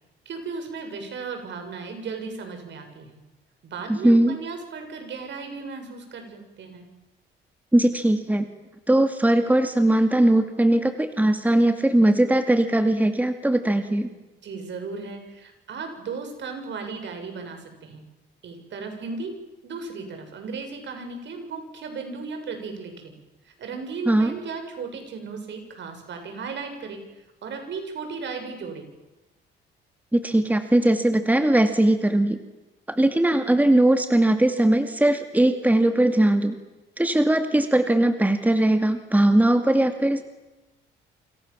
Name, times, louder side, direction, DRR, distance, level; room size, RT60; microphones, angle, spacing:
voice 1, 0.3-3.2 3.6-6.9 13.9-14.1 14.4-18.0 18.4-19.3 19.6-23.1 23.5-27.0 27.4-28.9, right 4 dB, 65° right, 5 dB, 7.4 m, -36 dB
voice 2, 3.9-4.4 7.7-8.5 8.9-14.1 24.1-24.3 30.1-32.4 32.9-36.5 37.0-40.2, right 1 dB, 10° right, 7 dB, 2.4 m, -20 dB
28.5 x 27.0 x 7.4 m, 1.0 s
cardioid pair, 90°, 20 cm